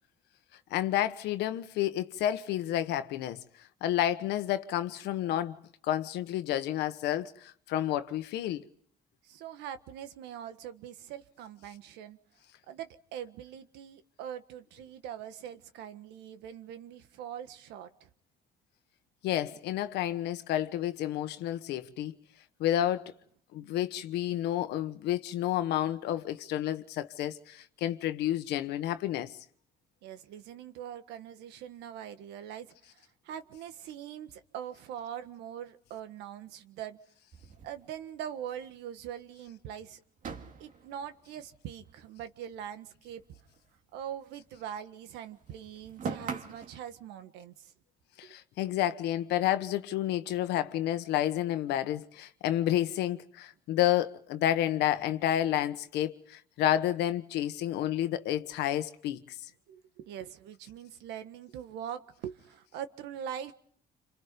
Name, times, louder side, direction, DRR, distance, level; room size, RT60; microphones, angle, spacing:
voice 1, 0.7-3.4 3.8-5.6 5.8-8.6 19.2-22.1 22.6-23.1 23.5-29.3 48.2-59.2, left 12 dB, 85° left, 1.4 m, -30 dB
voice 2, 9.2-12.2 12.7-18.1 30.0-37.0 37.6-40.0 40.6-43.2 43.9-47.7 48.2-48.3 59.7-63.5, right 9 dB, 90° right, 1.6 m, -42 dB
sound 1, 37.3-38.7 39.0-39.1 39.4-39.5 40.2-42.7 42.9-44.8 45.0-46.8, right 5 dB, 50° right, 2.4 m, -43 dB
29.0 x 26.5 x 5.3 m
cardioid pair, 110°, 17 cm